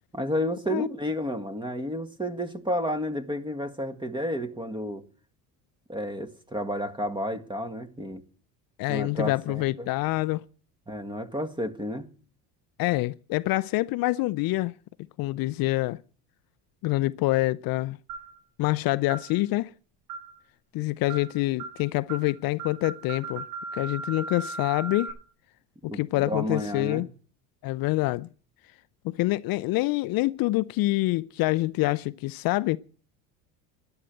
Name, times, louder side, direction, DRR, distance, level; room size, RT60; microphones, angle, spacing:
voice 1, 0.1-5.0 5.9-8.2 8.9-9.9 10.9-12.1 25.9-26.0 26.3-27.0, equal, 10° right, 1.8 m, -31 dB
voice 2, 8.8-10.4 12.8-14.7 15.2-16.0 16.8-18.0 18.6-19.7 20.7-23.5 23.7-25.1 25.9-27.1 27.6-28.3 29.0-32.8, left 19 dB, 55° left, 0.6 m, -26 dB
sound 1, 18.1-18.4 19.1-19.3 20.1-20.4 21.1-21.3 21.6-21.8 22.1-22.3 22.6-25.1, right 4 dB, 75° right, 6.8 m, -37 dB
12.5 x 11.0 x 7.6 m
supercardioid pair, 85°, 42 cm